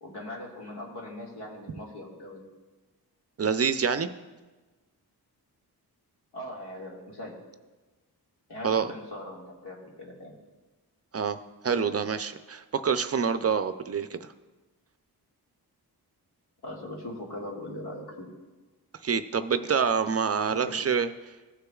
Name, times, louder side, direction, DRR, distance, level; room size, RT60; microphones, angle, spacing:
voice 1, 0.0-2.4 6.3-7.4 8.5-10.4 16.6-18.3 20.5-20.9, left 1 dB, 85° left, -2 dB, 2.0 m, -40 dB
voice 2, 3.4-4.1 8.6-8.9 11.1-11.4 11.6-14.2 19.0-21.1, right 6 dB, 40° right, 11 dB, 0.4 m, -26 dB
16.5 x 6.7 x 2.3 m, 1.2 s
wide cardioid pair, 100°, 39 cm